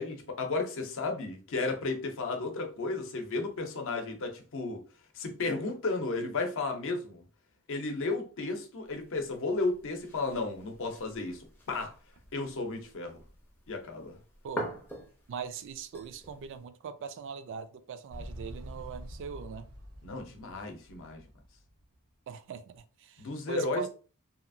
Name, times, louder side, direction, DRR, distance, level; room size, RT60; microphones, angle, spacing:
voice 1, 0.0-4.8 5.1-7.2 7.7-11.9 12.3-13.2 13.7-14.2 20.0-21.2 23.2-23.8, left 3 dB, 60° left, 0.6 m, -33 dB
sound 1, 8.8-16.6, left 1 dB, 10° left, 0.5 m, -46 dB
voice 2, 14.4-14.7 15.3-19.7 22.3-23.9, right 6 dB, 60° right, 0.3 m, -41 dB
Motorcycle, 18.1-22.0, equal, 75° right, 0.7 m, -46 dB
2.8 x 2.4 x 2.5 m
head